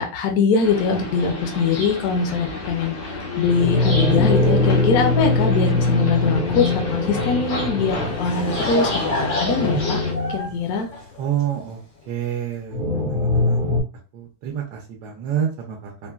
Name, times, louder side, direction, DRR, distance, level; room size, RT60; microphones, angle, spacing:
voice 1, 0.0-10.0 10.3-10.9, left 5 dB, 65° left, 3 dB, 1.0 m, -22 dB
sound 1, 0.6-10.1, left 4 dB, 85° left, 1.5 m, -30 dB
sound 2, 3.4-10.7 12.7-13.8, left 2 dB, 50° right, 0.6 m, -22 dB
Laughter / Crowd, 7.9-11.7, left 1 dB, 45° left, 0.6 m, -28 dB
voice 2, 11.2-11.8 12.1-12.8 13.1-13.6 14.1-16.1, right 9 dB, 75° right, -1 dB, 1.1 m, -28 dB
3.8 x 2.1 x 2.3 m, 0.36 s
omnidirectional pair, 1.9 m